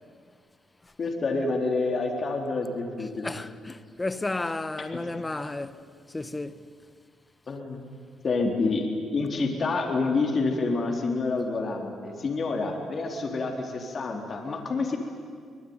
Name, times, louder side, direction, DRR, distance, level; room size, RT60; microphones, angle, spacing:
voice 1, 1.0-3.3 7.5-7.9 8.2-8.8 9.1-15.0, left 3 dB, 45° left, 3.8 m, -28 dB
voice 2, 3.2-6.7, left 2 dB, 20° left, 1.2 m, -33 dB
25.0 x 19.0 x 9.7 m
cardioid pair, 90°, 0 cm